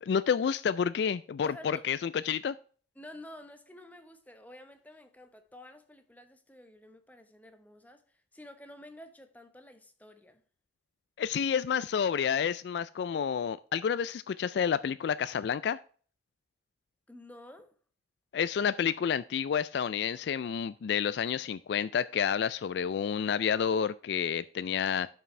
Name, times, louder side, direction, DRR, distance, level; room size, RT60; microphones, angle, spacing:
voice 1, 0.0-2.6 11.2-15.8 18.3-25.1, left 7 dB, 70° left, 0.3 m, -29 dB
voice 2, 1.4-1.8 3.0-8.0 8.3-10.4 17.1-17.7, left 1 dB, 10° left, 0.9 m, -50 dB
11.0 x 5.9 x 3.2 m
head